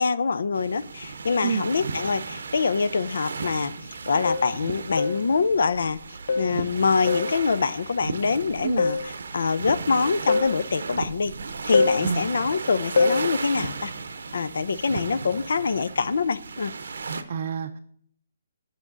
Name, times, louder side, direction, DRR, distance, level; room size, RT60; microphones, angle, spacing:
voice 1, 0.0-3.7 4.1-6.0 6.4-11.3 11.6-13.9 14.3-16.7, left 5 dB, 75° left, 17 dB, 0.5 m, -25 dB
sound 1, 0.5-17.2, right 4 dB, 80° right, 0.7 m, -35 dB
voice 2, 1.4-1.7 8.6-8.9 12.0-12.2 17.3-17.8, right 6 dB, 50° right, 6 dB, 0.4 m, -28 dB
sound 2, 4.2-4.6 5.0-5.3 6.3-6.6 7.1-7.4 8.8-9.1 10.3-10.6 11.7-12.0 13.0-13.3, left 4 dB, 50° left, 0.8 m, -23 dB
8.4 x 6.1 x 3.9 m, 0.66 s
hypercardioid pair, 170°, 0 cm